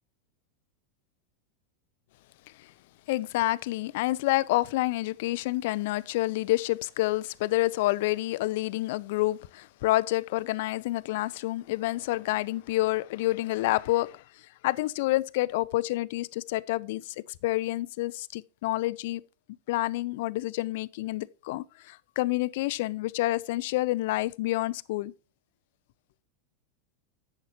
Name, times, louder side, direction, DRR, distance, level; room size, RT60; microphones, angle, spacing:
voice 1, 3.1-14.2 14.6-19.2 19.7-25.1, left 18 dB, 60° left, 0.5 m, -28 dB
11.0 x 7.9 x 2.7 m
hypercardioid pair, 90°, 0 cm